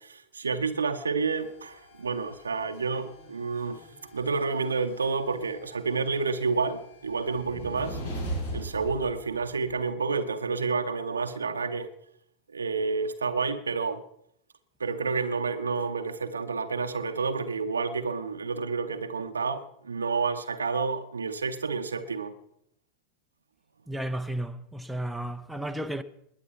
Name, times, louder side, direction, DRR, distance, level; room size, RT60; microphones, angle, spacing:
voice 1, 0.0-3.8 4.1-8.0 8.5-11.9 12.5-14.0 14.8-22.3, right 4 dB, 75° right, 0.8 m, -29 dB
sound 1, 1.2-9.8, right 1 dB, 65° left, 7.2 m, -41 dB
voice 2, 23.9-26.0, right 1 dB, 5° right, 0.7 m, -33 dB
20.5 x 8.3 x 5.7 m
figure-of-eight pair, 90°, 0 cm